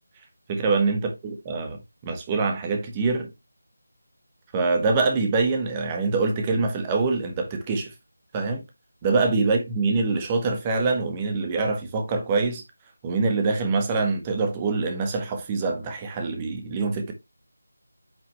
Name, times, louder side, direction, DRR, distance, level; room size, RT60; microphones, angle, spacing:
voice 1, 0.5-3.3 4.5-7.9 8.3-8.6 9.0-12.6 13.0-17.1, right 3 dB, 15° right, 1.5 m, -24 dB
9.3 x 5.9 x 3.3 m
figure-of-eight pair, 160°, 0 cm